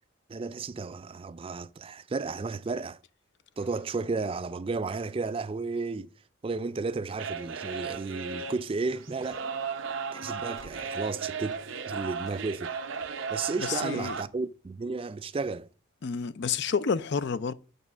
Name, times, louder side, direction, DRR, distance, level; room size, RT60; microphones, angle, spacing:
voice 1, 0.3-3.0 3.6-6.1 6.4-9.4 10.1-11.6 11.9-12.7 13.3-15.7, right 4 dB, 25° right, 0.3 m, -33 dB
sound 1, 7.2-14.2, right 5 dB, 60° right, 0.7 m, -36 dB
sound 2, 9.3-9.5 10.6-10.8 11.5-11.7 12.2-12.5 12.9-13.1 14.0-14.3, equal, 70° left, 2.4 m, -56 dB
voice 2, 13.6-14.2 16.0-17.5, left 5 dB, 55° left, 0.4 m, -29 dB
7.3 x 5.4 x 6.1 m
head